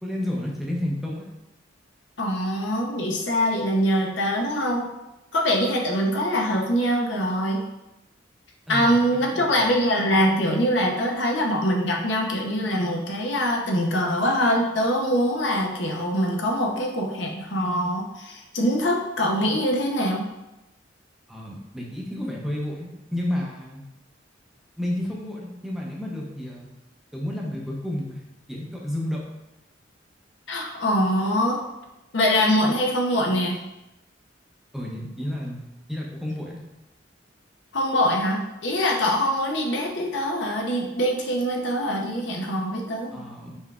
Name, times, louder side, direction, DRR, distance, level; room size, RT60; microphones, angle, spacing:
voice 1, 0.0-1.3 8.7-9.7 21.3-23.8 24.8-26.7 27.1-28.2 28.5-29.2 34.7-35.6 35.9-36.6 43.1-43.7, left 1 dB, ahead, -3 dB, 0.6 m, -31 dB
voice 2, 2.2-4.9 5.3-7.6 8.7-20.2 30.5-31.6 32.1-33.6 37.7-43.2, equal, 70° left, 0 dB, 0.8 m, -23 dB
5.3 x 3.4 x 2.4 m, 0.94 s
head